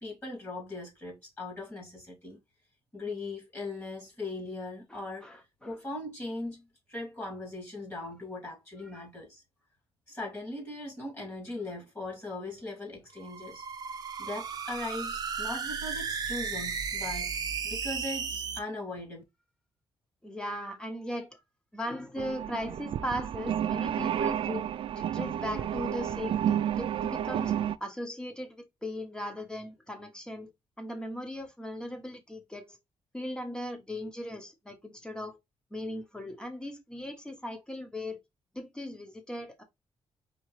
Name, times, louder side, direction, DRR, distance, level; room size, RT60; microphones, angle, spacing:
voice 1, 0.0-2.4 2.9-6.6 6.9-9.4 10.1-13.7 14.2-17.3 17.6-19.2, left 2 dB, 25° left, 2.1 m, -39 dB
voice 2, 4.9-5.8 8.9-9.0 20.2-21.4 21.7-24.7 24.9-27.5 27.8-30.5 30.8-32.8 33.1-35.4 35.7-38.2 38.5-39.6, left 1 dB, 10° left, 1.0 m, -38 dB
sound 1, 13.2-18.6, right 6 dB, 40° right, 0.8 m, -35 dB
sound 2, 22.2-27.8, right 10 dB, 55° right, 0.3 m, -31 dB
4.4 x 3.5 x 3.2 m
wide cardioid pair, 170°, 10 cm